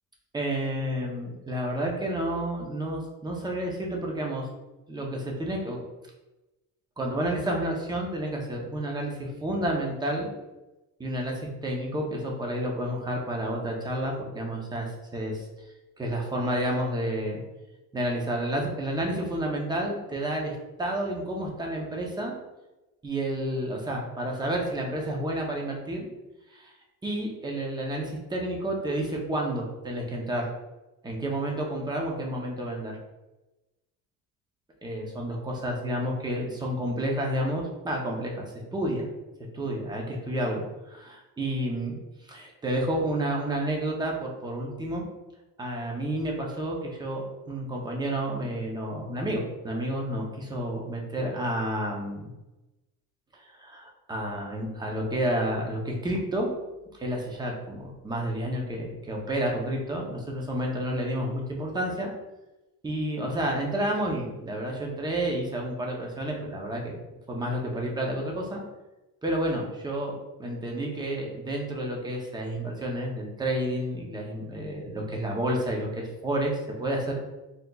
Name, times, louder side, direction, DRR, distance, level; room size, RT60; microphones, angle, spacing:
voice 1, 0.3-4.5 4.9-5.8 7.0-10.3 11.0-15.4 16.0-17.4 17.9-22.3 23.0-26.1 26.5-26.7 27.0-30.5 31.0-32.9 34.8-38.4 38.7-39.1 39.5-42.0 42.3-45.0 45.6-52.3 53.3-56.5 57.0-62.1 62.8-67.0 67.3-68.6 69.2-70.1 70.4-77.3, right 1 dB, 10° right, -1 dB, 0.6 m, -30 dB
4.3 x 3.9 x 2.3 m, 1.0 s
cardioid pair, 160°, 37 cm